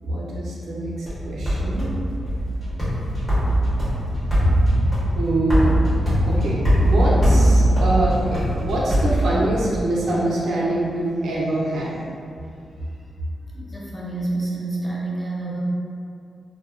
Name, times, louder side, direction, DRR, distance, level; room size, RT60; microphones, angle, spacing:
voice 1, 0.0-1.9 5.1-5.8 6.3-12.0, right 1 dB, 80° right, -6 dB, 0.5 m, -24 dB
sound 1, 1.1-9.8, equal, 25° left, 1.1 m, -20 dB
voice 2, 13.5-15.6, right 2 dB, 5° left, -7 dB, 0.5 m, -28 dB
2.7 x 2.2 x 2.3 m, 2.4 s
wide cardioid pair, 135°, 0 cm